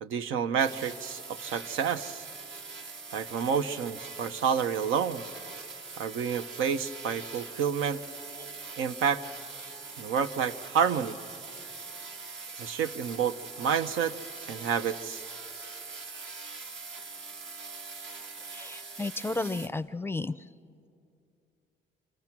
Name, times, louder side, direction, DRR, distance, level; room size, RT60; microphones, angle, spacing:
voice 1, 0.0-2.2 3.1-5.2 6.0-8.0 8.8-9.2 10.0-11.2 12.6-14.1 14.5-15.2, right 7 dB, 85° right, 10 dB, 0.8 m, -29 dB
sound 1, 0.6-19.7, right 4 dB, 70° right, 1.9 m, -43 dB
voice 2, 18.5-20.3, left 2 dB, 10° left, 13 dB, 0.5 m, -33 dB
29.5 x 24.5 x 6.0 m, 2.5 s
cardioid pair, 90°, 20 cm